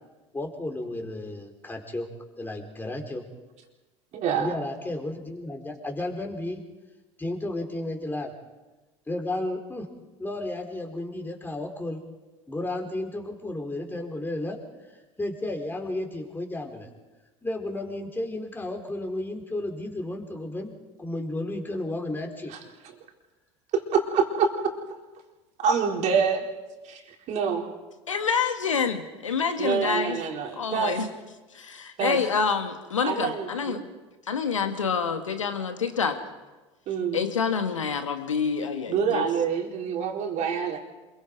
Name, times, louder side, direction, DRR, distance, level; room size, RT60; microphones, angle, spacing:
voice 1, 0.3-2.1 2.4-3.2 4.4-6.6 7.2-8.3 9.1-9.9 10.2-12.0 12.5-14.6 15.2-16.9 17.4-20.7 21.0-22.5, left 1 dB, 10° left, 2 dB, 4.4 m, -33 dB
voice 2, 4.1-4.5 22.5-22.6 23.7-24.5 25.6-26.4 26.8-27.6 29.6-31.1 32.0-32.2 33.0-33.8 36.9-37.2 38.9-40.8, right 6 dB, 50° right, 1 dB, 4.2 m, -26 dB
voice 3, 28.1-30.2 30.6-31.1 31.5-33.8 34.3-36.2 37.1-39.3, left 6 dB, 90° left, 7 dB, 1.9 m, -27 dB
27.5 x 23.0 x 4.8 m, 1.2 s
hypercardioid pair, 80°, 16 cm